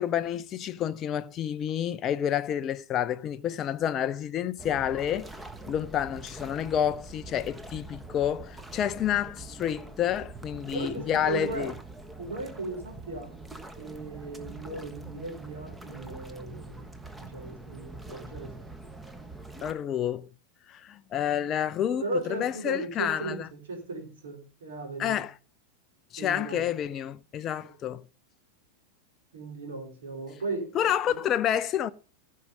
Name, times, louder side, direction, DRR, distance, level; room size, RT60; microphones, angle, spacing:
voice 1, 0.0-5.3 5.7-11.7 19.6-20.3 20.7-22.0 22.3-23.5 25.0-25.3 26.1-28.0 30.7-31.9, left 10 dB, 30° left, 0.5 m, -29 dB
sound 1, 4.6-19.7, right 2 dB, 10° right, 1.4 m, -44 dB
voice 2, 10.7-11.8 12.2-13.3 13.8-16.9 17.1-18.7 22.0-25.2 26.2-26.7 27.6-27.7 29.3-31.2, right 3 dB, 65° right, 4.5 m, -37 dB
16.0 x 6.5 x 5.4 m
figure-of-eight pair, 90°, 0 cm